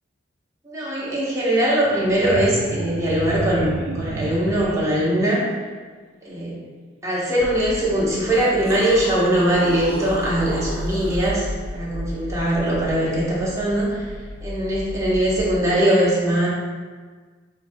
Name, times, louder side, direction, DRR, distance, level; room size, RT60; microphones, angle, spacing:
voice 1, 0.6-5.4 6.2-6.6 7.0-14.1 14.4-16.5, right 1 dB, 15° right, -7 dB, 0.9 m, -21 dB
sound 1, 1.5-1.6 1.8-4.9 7.4-7.5 8.2-11.3 13.8-13.9, right 2 dB, 85° right, 0.4 m, -31 dB
sound 2, 7.4-15.5, left 1 dB, 80° left, 0.5 m, -34 dB
4.6 x 2.7 x 3.4 m, 1.5 s
head